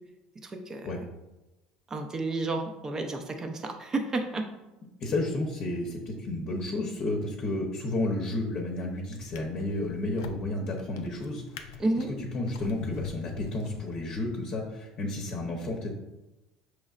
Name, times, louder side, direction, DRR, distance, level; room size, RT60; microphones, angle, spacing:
voice 1, 0.4-0.9 1.9-4.5 11.8-12.1, right 2 dB, 25° right, 5 dB, 0.6 m, -31 dB
voice 2, 5.0-12.0 12.3-15.9, left 2 dB, 45° left, 0 dB, 0.8 m, -32 dB
Drawer open or close, 8.2-8.6 9.1-14.3 15.0-15.2, left 6 dB, 90° left, 0.4 m, -43 dB
5.2 x 3.2 x 2.5 m, 1.0 s
supercardioid pair, 95°, 2 cm